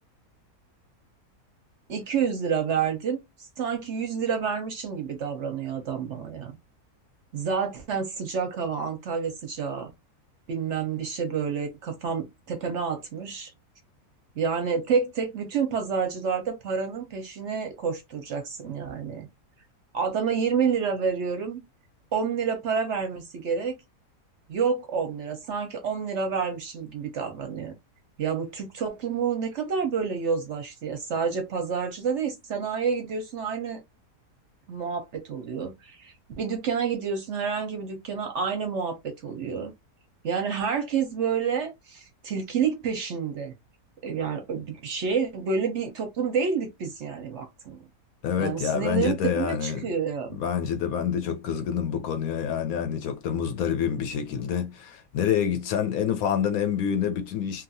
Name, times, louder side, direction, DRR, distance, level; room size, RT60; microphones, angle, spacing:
voice 1, 1.9-3.2 3.6-6.5 7.3-9.9 10.5-13.5 14.4-19.3 19.9-21.6 22.1-23.8 24.5-27.7 28.2-33.8 34.7-39.7 40.2-43.5 44.0-47.8 48.4-50.4, right 6 dB, 60° right, 0.8 m, -29 dB
voice 2, 48.2-49.9 50.4-57.6, left 8 dB, 70° left, 1.1 m, -27 dB
2.8 x 2.4 x 2.6 m
omnidirectional pair, 1.6 m